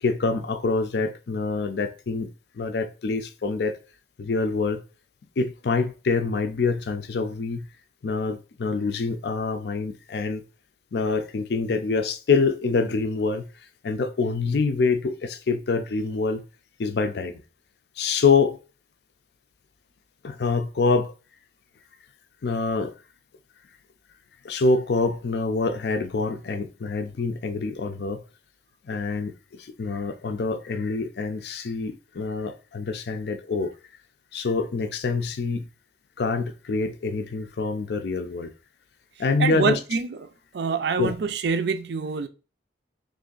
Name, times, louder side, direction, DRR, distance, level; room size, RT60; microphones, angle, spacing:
voice 1, 0.0-2.3 2.6-3.8 4.2-4.8 5.4-7.7 8.0-10.4 10.9-13.4 13.8-16.4 16.8-17.4 18.0-18.6 20.2-21.1 22.4-22.9 24.4-28.2 28.9-29.3 29.8-33.7 34.3-35.6 36.2-38.5 39.2-39.8 41.0-41.1, left 4 dB, 65° left, 0.4 m, -25 dB
voice 2, 39.4-40.2 40.5-42.3, right 5 dB, 65° right, 0.4 m, -25 dB
3.1 x 2.6 x 3.8 m
head